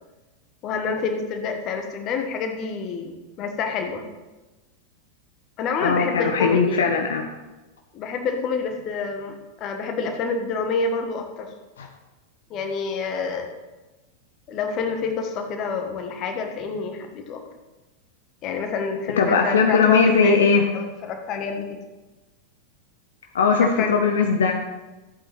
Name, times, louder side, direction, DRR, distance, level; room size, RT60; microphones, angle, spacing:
voice 1, 0.6-4.0 5.6-6.9 7.9-11.5 12.5-13.5 14.5-17.4 18.4-20.4 20.7-21.8 23.5-23.9, left 5 dB, 35° left, 4 dB, 1.5 m, -28 dB
voice 2, 5.8-7.3 11.8-11.9 19.2-20.6 23.3-24.5, left 5 dB, 65° left, 3 dB, 0.9 m, -19 dB
14.0 x 8.4 x 3.5 m, 1.1 s
figure-of-eight pair, 90°, 0 cm